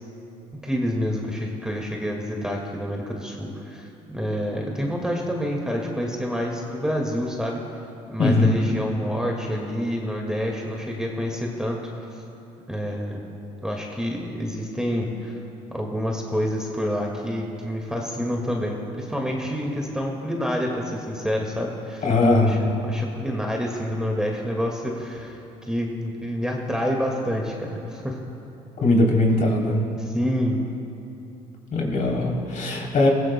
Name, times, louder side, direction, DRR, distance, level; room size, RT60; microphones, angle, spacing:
voice 1, 0.6-7.6 8.1-11.8 12.7-13.2 13.6-15.4 15.7-22.0 22.5-25.4 25.7-28.2 30.0-30.6, equal, 5° right, 0 dB, 1.9 m, -28 dB
voice 2, 8.2-8.5 22.0-22.6 28.8-29.8 31.7-33.1, left 2 dB, 50° left, -1 dB, 3.4 m, -20 dB
24.0 x 15.5 x 2.2 m, 2.9 s
supercardioid pair, 65°, 17 cm